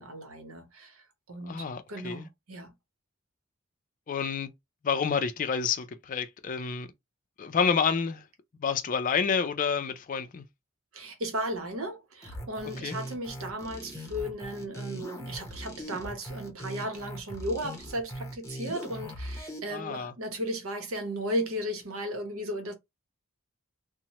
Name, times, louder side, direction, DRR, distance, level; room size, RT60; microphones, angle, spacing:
voice 1, 0.0-1.6 1.9-2.7 10.9-22.7, equal, 75° right, 0.9 m, -35 dB
voice 2, 1.4-2.3 4.1-4.5 4.8-6.9 7.4-8.3 8.6-10.4 12.8-13.0 19.7-20.1, left 6 dB, 40° left, 0.4 m, -29 dB
sound 1, 12.2-19.6, equal, 15° left, 0.7 m, -40 dB
2.9 x 2.1 x 2.9 m
head